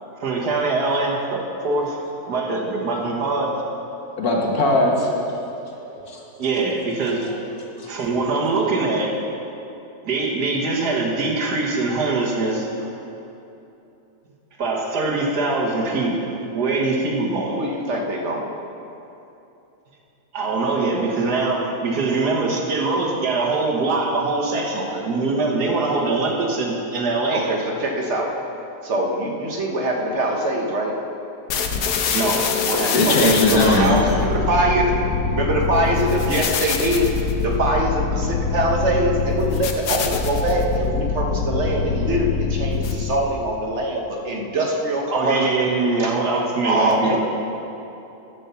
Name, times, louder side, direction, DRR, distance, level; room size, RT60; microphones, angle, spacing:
voice 1, 0.2-2.0 2.3-3.8 6.4-7.3 7.8-9.1 10.0-12.9 14.6-17.6 20.3-27.5 32.1-33.0 45.1-47.2, right 3 dB, 90° right, -1 dB, 1.9 m, -23 dB
voice 2, 4.1-5.2 5.7-6.2 7.0-7.1 7.8-7.9 32.7-34.0, left 2 dB, 70° left, -1 dB, 1.9 m, -20 dB
voice 3, 17.5-18.5 24.8-25.1 27.3-28.3 28.8-30.9 33.0-34.9 35.3-37.1 37.4-45.4 46.0-46.1 46.7-47.2, right 1 dB, 50° right, 0 dB, 1.3 m, -23 dB
sound 1, 31.5-43.3, left 5 dB, 90° left, 1.3 m, -24 dB
12.0 x 5.4 x 6.9 m, 2.9 s
omnidirectional pair, 1.7 m